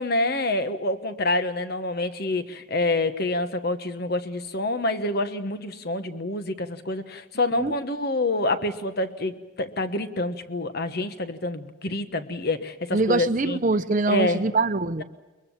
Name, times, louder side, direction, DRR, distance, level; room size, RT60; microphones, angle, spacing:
voice 1, 0.0-13.6 14.1-14.5, left 2 dB, 50° left, 9 dB, 1.3 m, -27 dB
voice 2, 12.9-15.0, right 3 dB, 40° right, 12 dB, 0.8 m, -23 dB
22.5 x 22.0 x 7.2 m, 1.2 s
head